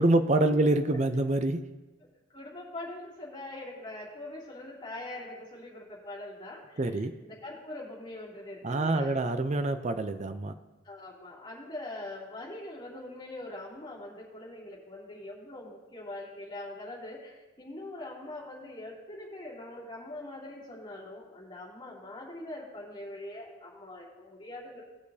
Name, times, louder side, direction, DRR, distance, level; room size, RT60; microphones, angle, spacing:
voice 1, 0.0-1.6 6.8-7.1 8.6-10.5, right 2 dB, 35° right, 9 dB, 0.5 m, -26 dB
voice 2, 2.3-9.2 10.8-24.9, left 1 dB, 25° left, -6 dB, 2.8 m, -43 dB
18.5 x 6.6 x 2.8 m, 1.2 s
head